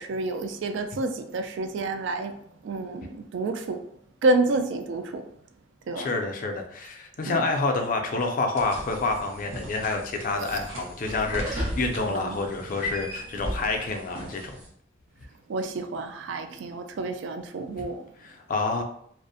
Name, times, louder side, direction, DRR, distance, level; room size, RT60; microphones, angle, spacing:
voice 1, 0.0-2.3 2.6-3.8 4.2-5.2 5.9-6.1 7.3-7.4 12.1-12.4 15.5-18.0, right 2 dB, 70° right, 7 dB, 0.3 m, -28 dB
voice 2, 6.0-14.5 18.2-18.8, left 3 dB, 45° left, 4 dB, 0.3 m, -28 dB
sound 1, 8.5-14.7, equal, 90° right, 0.8 m, -37 dB
2.4 x 2.0 x 2.6 m, 0.65 s
head